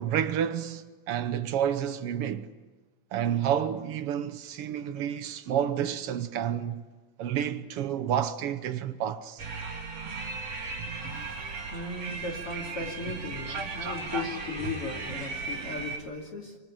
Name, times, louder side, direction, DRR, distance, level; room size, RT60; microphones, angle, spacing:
voice 1, 0.0-2.5 3.1-6.8 7.2-9.4, right 9 dB, 85° right, 1.2 m, -30 dB
sound 1, 9.4-16.0, right 3 dB, 45° right, 4.0 m, -36 dB
voice 2, 11.1-16.6, left 3 dB, 40° left, 3.4 m, -37 dB
26.0 x 25.5 x 8.9 m
omnidirectional pair, 4.1 m